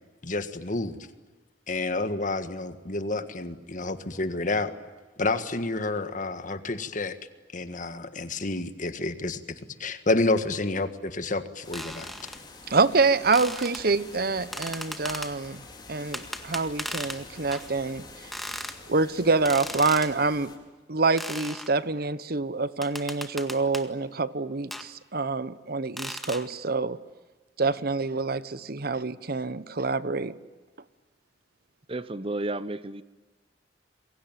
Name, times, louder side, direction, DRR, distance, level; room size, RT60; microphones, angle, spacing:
voice 1, 0.2-1.1 1.7-4.7 5.2-7.2 7.5-12.1, left 2 dB, 45° left, 1.8 m, -29 dB
sound 1, 11.6-20.6, left 3 dB, 25° left, 4.9 m, -47 dB
sound 2, 11.7-12.4 13.3-13.8 14.5-15.3 16.1-17.2 17.5-17.7 18.3-18.8 19.5-20.1 21.2-21.7 22.8-23.9 24.7-24.9 26.0-26.5, equal, ahead, 1.8 m, -36 dB
voice 2, 12.7-15.6 15.9-18.0 18.9-20.5 20.9-27.0 27.6-30.4, right 3 dB, 55° right, 1.0 m, -26 dB
voice 3, 31.9-33.0, right 2 dB, 30° right, 0.8 m, -32 dB
28.0 x 23.0 x 9.2 m
head